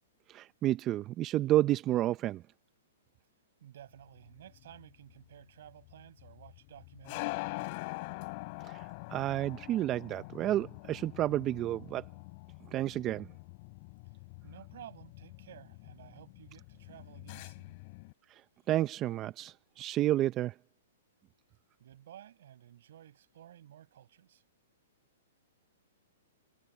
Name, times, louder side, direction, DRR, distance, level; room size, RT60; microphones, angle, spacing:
voice 1, 0.3-2.4 8.6-12.1 12.7-13.3 18.3-18.4 18.7-20.5, right 14 dB, 25° right, 0.7 m, -30 dB
voice 2, 3.6-7.7 14.4-17.8 21.8-24.4, right 11 dB, 65° right, 6.6 m, -54 dB
sound 1, 4.1-18.1, left 26 dB, 45° left, 3.1 m, -44 dB
hypercardioid pair, 145°, 0 cm